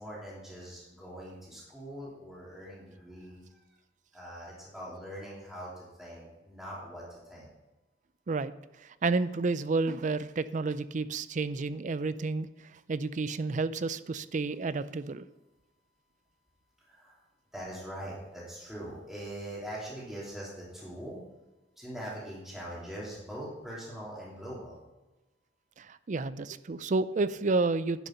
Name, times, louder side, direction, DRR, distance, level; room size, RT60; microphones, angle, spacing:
voice 1, 0.0-3.7 4.1-7.5 16.9-17.2 17.5-21.2 21.8-24.8, equal, ahead, -7 dB, 2.9 m, -42 dB
voice 2, 8.8-15.3 25.8-28.1, right 3 dB, 45° right, 15 dB, 0.4 m, -30 dB
10.5 x 6.6 x 5.8 m, 1.1 s
head